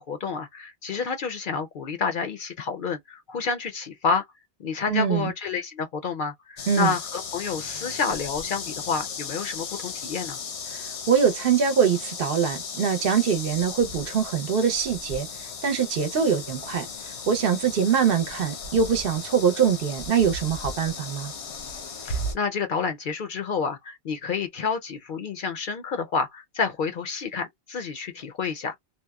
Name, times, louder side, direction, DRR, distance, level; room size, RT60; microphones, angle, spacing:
voice 1, 0.0-4.2 4.6-10.4 22.0-28.8, left 5 dB, 60° left, 0.6 m, -29 dB
voice 2, 4.9-5.3 6.7-6.9 10.7-16.9 17.3-21.3, right 7 dB, 60° right, 0.7 m, -23 dB
sound 1, 6.6-22.4, left 4 dB, 80° left, 1.0 m, -36 dB
2.8 x 2.0 x 2.2 m
omnidirectional pair, 1.1 m